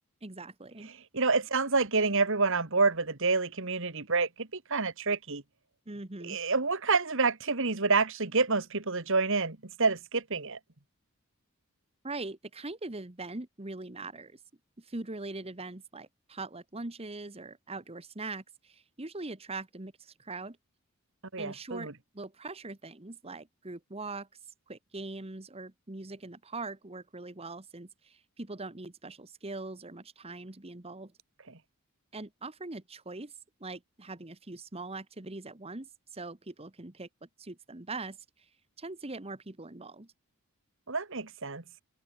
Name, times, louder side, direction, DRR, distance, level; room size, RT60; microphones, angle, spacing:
voice 1, 0.2-0.9 5.9-6.4 12.0-14.4 14.8-20.6 21.4-31.1 32.1-37.1 37.4-38.5 38.8-40.1, right 3 dB, 25° right, 1.3 m, -42 dB
voice 2, 1.1-5.4 6.2-10.6 21.3-21.9 40.9-41.6, right 4 dB, 60° right, 2.1 m, -28 dB
open air
head